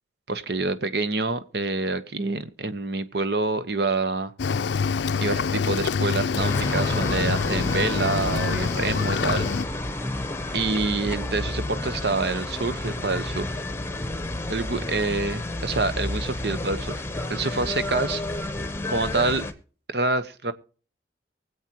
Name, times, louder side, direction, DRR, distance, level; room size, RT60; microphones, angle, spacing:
voice 1, 0.3-4.3 5.2-9.5 10.5-13.6 14.5-17.0 17.3-18.2 18.9-19.4 19.9-20.5, right 3 dB, 65° right, 12 dB, 1.1 m, -27 dB
Cricket / Waves surf, 4.4-9.7, left 5 dB, 80° left, 0.4 m, -26 dB
sound 1, 6.4-19.5, left 2 dB, 15° left, 0.9 m, -30 dB
24.0 x 8.2 x 3.0 m, 0.40 s
head